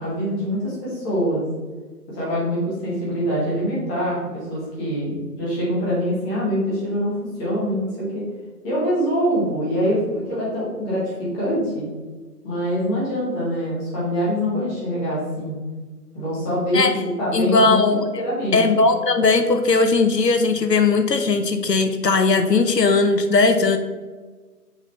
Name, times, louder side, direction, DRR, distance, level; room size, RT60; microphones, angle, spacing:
voice 1, 0.0-1.4 2.1-8.2 8.6-11.8 12.4-15.6 16.1-17.8 18.2-18.6, equal, 10° left, -8 dB, 1.3 m, -24 dB
voice 2, 17.3-18.0 18.5-23.8, left 3 dB, 85° left, 7 dB, 0.8 m, -18 dB
6.0 x 4.0 x 4.2 m, 1.4 s
figure-of-eight pair, 145°, 48 cm